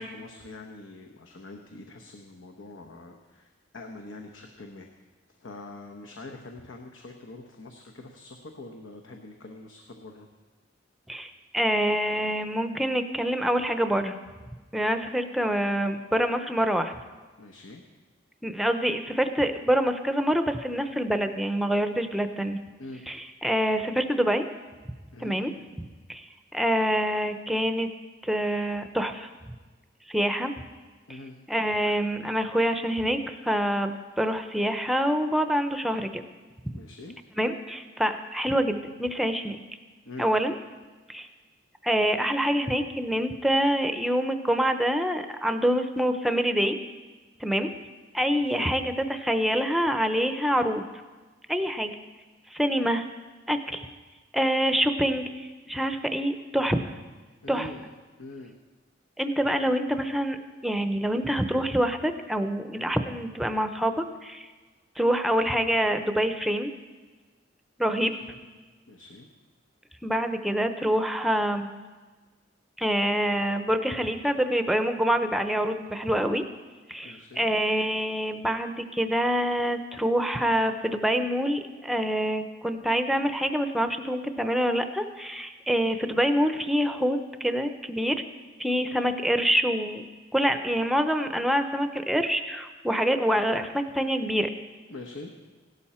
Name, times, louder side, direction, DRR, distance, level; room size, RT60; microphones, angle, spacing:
voice 1, 0.0-4.9 5.4-10.3 17.4-17.8 22.8-23.0 25.1-25.4 31.1-31.3 36.7-37.1 40.0-40.3 48.3-48.7 57.4-57.9 58.2-58.5 68.2-68.4 68.9-69.3 77.0-77.5 94.9-95.3, left 2 dB, 75° left, 3 dB, 1.0 m, -44 dB
voice 2, 11.1-14.1 14.7-17.0 18.4-22.6 23.1-24.5 25.2-25.5 26.1-26.3 26.5-27.9 28.2-29.3 30.1-30.5 31.1-31.2 31.5-36.2 37.4-39.6 40.2-40.6 41.1-41.3 41.8-46.8 47.4-47.7 48.1-50.9 51.5-52.0 52.5-53.1 53.5-53.9 54.3-56.8 57.5-57.7 59.2-60.4 60.6-64.5 65.0-66.7 67.8-68.1 70.0-71.7 72.8-76.4 76.9-88.2 88.6-94.5, equal, ahead, 7 dB, 0.6 m, -26 dB
17.0 x 12.0 x 4.3 m, 1.3 s
head